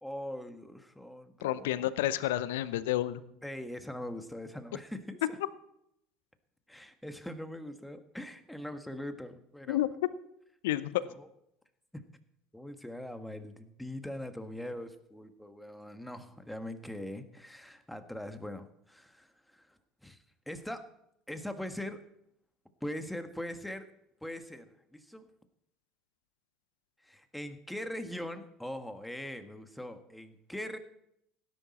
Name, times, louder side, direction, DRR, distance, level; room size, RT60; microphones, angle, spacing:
voice 1, 0.0-1.9 3.4-5.4 6.7-9.8 11.1-11.3 11.9-12.0 12.5-20.2 20.5-20.9 21.3-22.0 22.8-23.9 24.2-25.3 27.0-30.8, left 1 dB, 5° left, 8 dB, 1.5 m, -41 dB
voice 2, 1.4-3.2 9.7-9.9 10.6-11.0, left 14 dB, 75° left, 16 dB, 0.7 m, -30 dB
17.0 x 10.5 x 4.3 m, 0.77 s
hypercardioid pair, 70°, 0 cm